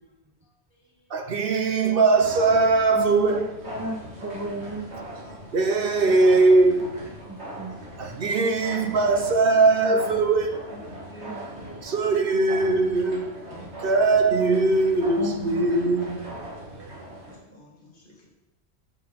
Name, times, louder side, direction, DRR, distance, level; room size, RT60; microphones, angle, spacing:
voice 1, 0.4-2.3 8.3-9.0 9.5-9.9 10.1-10.3 10.7-12.0 12.9-13.1 13.8-14.5 17.2-18.3, left 1 dB, 50° left, -2 dB, 2.2 m, -50 dB
voice 2, 1.1-3.5 5.5-7.0 8.0-10.7 11.8-13.5 13.8-16.4, right 3 dB, 60° right, 5 dB, 0.9 m, -21 dB
sound 1, 2.1-17.4, right 1 dB, 80° right, 2.1 m, -40 dB
voice 3, 2.9-4.9 7.2-7.8 9.9-10.2 11.1-11.8 13.5-13.8 15.2-16.3 16.6-17.0, right 1 dB, 30° right, 2 dB, 0.3 m, -36 dB
8.3 x 6.9 x 3.4 m, 0.93 s
omnidirectional pair, 1.1 m